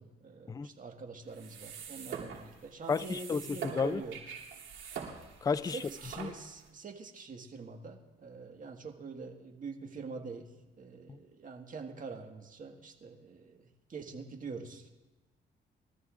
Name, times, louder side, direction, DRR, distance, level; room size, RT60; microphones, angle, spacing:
voice 1, 0.0-4.2 5.7-10.5 10.8-14.9, right 4 dB, 40° right, 1.7 m, -45 dB
sound 1, 1.3-6.7, right 7 dB, 75° right, 3.0 m, -44 dB
voice 2, 2.9-4.0 5.4-5.8 6.2-6.3 11.1-11.2, left 5 dB, 20° left, 0.4 m, -32 dB
22.5 x 13.5 x 2.5 m
cardioid pair, 90°, 20 cm